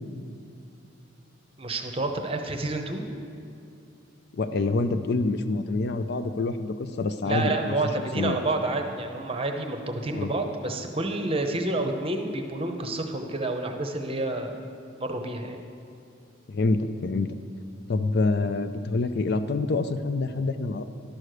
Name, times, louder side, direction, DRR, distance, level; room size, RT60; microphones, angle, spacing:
voice 1, 1.6-3.1 7.2-14.6 15.0-15.6, right 2 dB, 25° right, 5 dB, 0.8 m, -29 dB
voice 2, 4.3-7.7 8.1-8.4 10.1-10.3 16.5-17.3 17.9-20.8, left 3 dB, 50° left, 10 dB, 0.4 m, -26 dB
11.5 x 6.3 x 6.6 m, 2.7 s
head